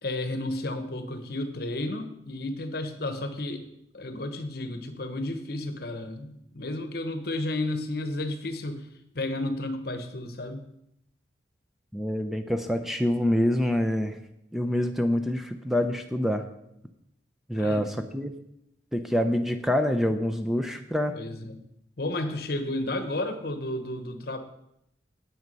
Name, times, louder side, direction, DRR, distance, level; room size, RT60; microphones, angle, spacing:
voice 1, 0.0-3.6 3.9-8.9 9.1-10.6 17.5-18.1 21.1-21.6 22.0-24.4, left 2 dB, 55° left, 8 dB, 1.1 m, -32 dB
voice 2, 11.9-14.1 14.5-16.4 17.5-18.3 18.9-21.1, left 1 dB, ahead, 6 dB, 0.5 m, -26 dB
9.4 x 8.5 x 5.4 m, 0.80 s
head